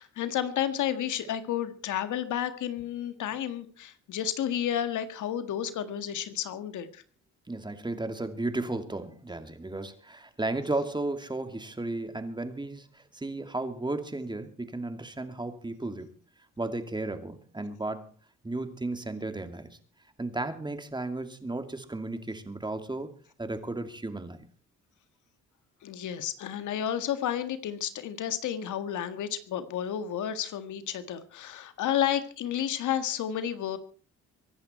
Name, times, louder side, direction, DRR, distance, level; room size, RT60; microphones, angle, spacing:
voice 1, 0.0-7.0 25.8-33.8, left 10 dB, 80° left, 10 dB, 1.8 m, -31 dB
voice 2, 7.5-16.1 16.6-18.1 18.4-19.7 20.2-23.1 23.4-24.5, right 2 dB, 15° right, 8 dB, 2.5 m, -34 dB
24.5 x 11.0 x 4.4 m, 0.41 s
cardioid pair, 90°, 30 cm